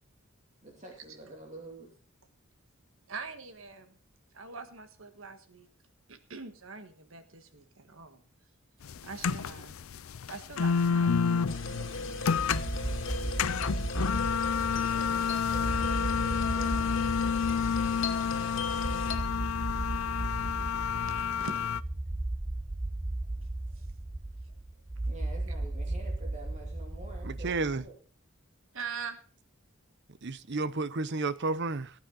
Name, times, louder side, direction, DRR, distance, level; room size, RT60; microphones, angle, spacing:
voice 1, 0.6-1.9 14.8-17.0 25.1-28.0, right 2 dB, 35° right, 2.6 m, -47 dB
voice 2, 3.1-4.0 4.3-5.7 6.1-8.2 9.0-9.7 10.3-12.4 12.7-13.0 14.9-15.3 20.2-20.4 21.1-21.5 23.4-23.5 23.7-23.9 28.7-29.2, right 4 dB, 70° right, 1.6 m, -44 dB
sound 1, 8.8-21.8, left 6 dB, 80° left, 0.5 m, -30 dB
sound 2, 11.5-19.2, left 3 dB, 60° left, 2.2 m, -38 dB
sound 3, 12.3-27.9, right 2 dB, 15° right, 0.6 m, -36 dB
voice 3, 27.2-27.8 30.2-31.9, right 3 dB, 55° right, 0.7 m, -31 dB
18.5 x 9.1 x 3.9 m
head